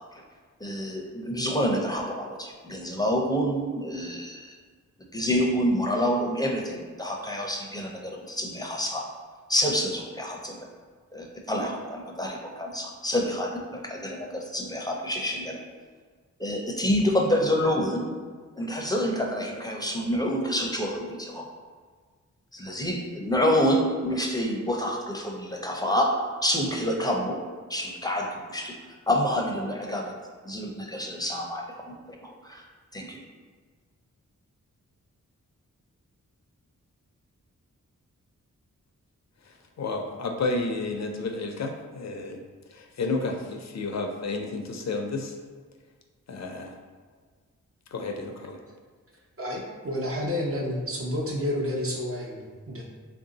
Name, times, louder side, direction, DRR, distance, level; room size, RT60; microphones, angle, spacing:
voice 1, 0.6-4.5 5.1-9.0 9.5-10.6 11.1-15.6 16.4-18.1 18.6-21.5 22.5-26.1 26.4-27.4 27.7-28.7 29.1-30.1 30.4-32.6 32.9-33.2, equal, 10° left, 0 dB, 0.6 m, -27 dB
voice 2, 39.8-42.4 42.7-45.3 46.3-46.7 47.9-48.6, left 3 dB, 55° left, 3 dB, 0.5 m, -31 dB
voice 3, 49.4-52.8, left 1 dB, 45° right, -2 dB, 0.8 m, -30 dB
3.4 x 2.6 x 3.8 m, 1.5 s
cardioid pair, 65°, 32 cm